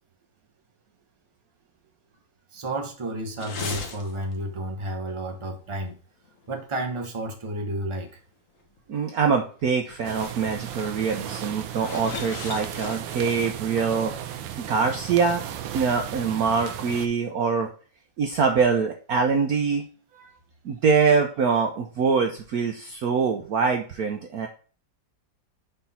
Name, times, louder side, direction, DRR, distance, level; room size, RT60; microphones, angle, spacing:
voice 1, 2.5-6.0 6.5-8.2, right 1 dB, 20° right, 3 dB, 1.0 m, -31 dB
sound 1, 3.4-4.4 4.7-4.9 5.7-5.9 6.3-6.4 7.0-7.1 8.8-8.9 9.6-9.7 10.0-10.3 10.6-10.8 11.6-13.2, left 4 dB, 50° left, 1.4 m, -37 dB
voice 2, 8.9-14.1 14.6-15.4 15.7-17.7 18.2-19.8 20.1-20.3 20.6-24.5, right 5 dB, 65° right, 4 dB, 1.0 m, -24 dB
sound 2, 10.0-17.1, right 10 dB, 80° right, 1.4 m, -35 dB
5.1 x 4.4 x 5.5 m, 0.39 s
omnidirectional pair, 2.1 m